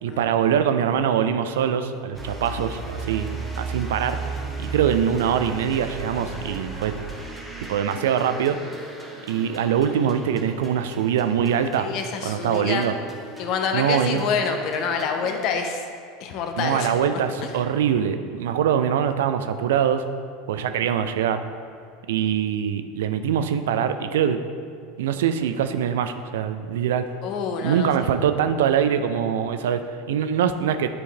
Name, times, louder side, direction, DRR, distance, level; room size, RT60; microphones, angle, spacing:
voice 1, 0.0-4.2 4.6-6.9 7.7-8.6 9.3-11.9 12.2-13.0 13.7-14.2 16.6-20.1 20.5-21.4 22.1-24.4 25.0-27.0 27.6-30.9, right 8 dB, 65° right, 9 dB, 0.4 m, -23 dB
sound 1, 2.1-15.5, right 3 dB, 5° right, 1.3 m, -36 dB
voice 2, 11.8-12.9 13.4-15.8 16.2-17.5 27.2-28.1, left 5 dB, 50° left, 5 dB, 0.8 m, -27 dB
10.5 x 4.6 x 3.4 m, 2.4 s
figure-of-eight pair, 75°, 0 cm